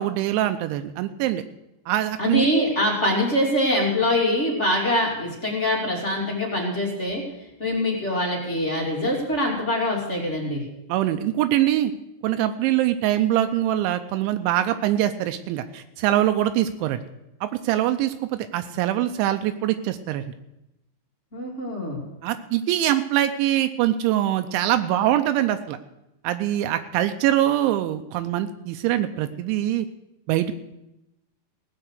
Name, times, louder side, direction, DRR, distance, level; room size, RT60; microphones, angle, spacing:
voice 1, 0.0-1.4 1.9-2.5 10.9-11.9 12.2-17.0 17.4-20.2 22.2-25.8 26.2-29.9 30.3-30.5, right 13 dB, 85° right, 8 dB, 3.0 m, -23 dB
voice 2, 2.2-7.2 7.6-10.6 21.3-22.1, left 1 dB, 25° left, -2 dB, 1.6 m, -24 dB
17.5 x 7.8 x 6.5 m, 0.89 s
omnidirectional pair, 5.4 m